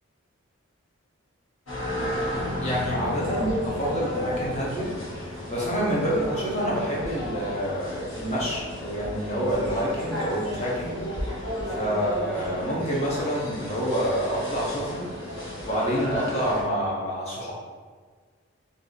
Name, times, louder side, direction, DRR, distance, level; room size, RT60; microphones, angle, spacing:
sound 1, 1.7-16.6, equal, 85° left, 1.2 m, -33 dB
sound 2, 2.3-6.4, left 1 dB, 5° right, 0.5 m, -38 dB
voice 1, 2.6-4.9 5.5-11.0 11.7-15.0 15.6-17.5, equal, 30° left, -5 dB, 0.7 m, -27 dB
2.7 x 2.4 x 3.8 m, 1.5 s
head